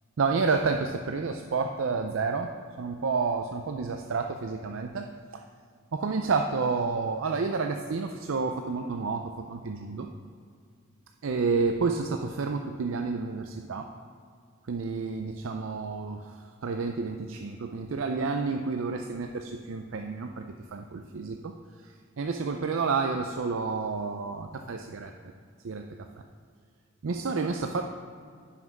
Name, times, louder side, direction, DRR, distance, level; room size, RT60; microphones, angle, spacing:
voice 1, 0.2-5.4 5.9-10.1 11.2-13.9 14.6-20.5 20.7-21.5 21.8-25.1 25.6-25.8 27.0-27.8, right 4 dB, 80° right, 5 dB, 0.5 m, -30 dB
9.6 x 5.8 x 6.0 m, 2.1 s
head